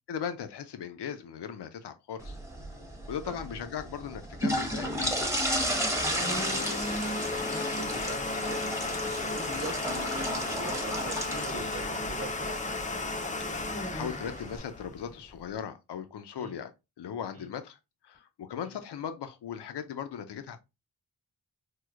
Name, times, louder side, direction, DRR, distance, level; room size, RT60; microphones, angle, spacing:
voice 1, 0.1-2.4 3.1-5.2 11.5-11.8 13.4-16.7 17.0-20.6, left 8 dB, 75° left, 0.5 m, -38 dB
sound 1, 2.2-14.6, equal, 5° right, 0.8 m, -34 dB
Domestic sounds home sounds, 4.8-15.5, left 2 dB, 20° left, 0.4 m, -34 dB
voice 2, 6.1-8.7 9.0-12.6 16.4-16.5 17.3-17.5 18.6-18.8, right 3 dB, 35° right, 1.0 m, -43 dB
4.5 x 2.0 x 2.3 m
wide cardioid pair, 70°, 41 cm